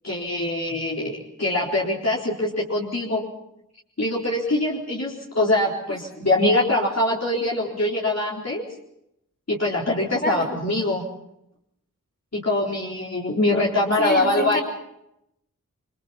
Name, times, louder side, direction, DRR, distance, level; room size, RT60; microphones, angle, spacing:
voice 1, 0.0-3.3 4.0-8.7 9.5-11.1 12.3-14.6, left 1 dB, 50° left, -4 dB, 4.2 m, -23 dB
voice 2, 14.0-14.6, left 1 dB, 30° left, 3 dB, 5.2 m, -27 dB
29.0 x 24.5 x 4.2 m, 0.79 s
wide cardioid pair, 65°, 32 cm